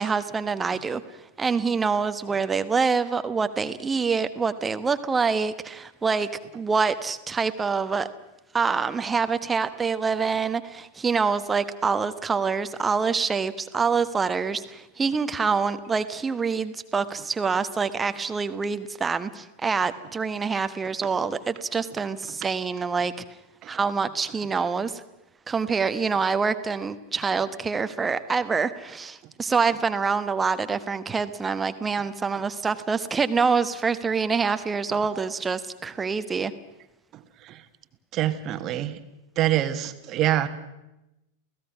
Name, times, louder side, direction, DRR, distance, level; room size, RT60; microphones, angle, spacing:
voice 1, 0.0-8.1 8.5-23.1 23.7-25.0 25.5-36.5, right 5 dB, 15° right, 11 dB, 1.2 m, -26 dB
voice 2, 38.1-39.0 39.4-40.5, right 13 dB, 35° right, 10 dB, 1.5 m, -25 dB
29.5 x 17.0 x 6.1 m, 0.94 s
figure-of-eight pair, 90°, 0 cm